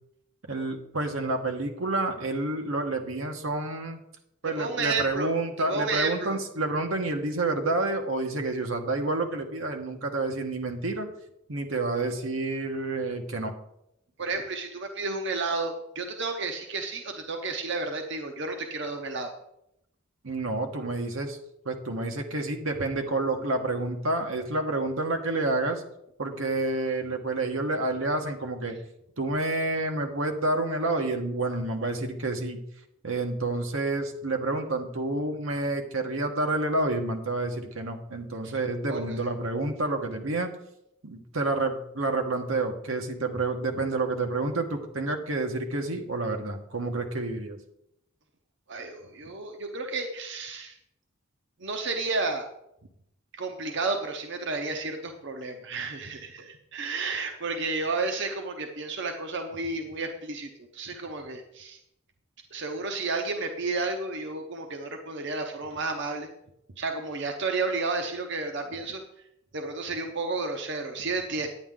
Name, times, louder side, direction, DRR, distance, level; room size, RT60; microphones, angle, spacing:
voice 1, 0.5-4.0 4.4-11.1 11.5-13.5 20.2-21.4 21.6-25.8 26.2-28.8 29.2-32.6 33.0-40.5 41.0-47.6, right 2 dB, 85° right, 4 dB, 1.3 m, -29 dB
voice 2, 4.6-5.3 5.7-6.4 14.2-19.3 38.3-38.5 38.9-39.3 48.7-50.8 51.6-52.5 53.4-61.8 62.5-66.3 66.8-69.0 69.5-71.5, right 3 dB, 60° right, 4 dB, 0.9 m, -32 dB
9.7 x 9.4 x 3.7 m, 0.80 s
head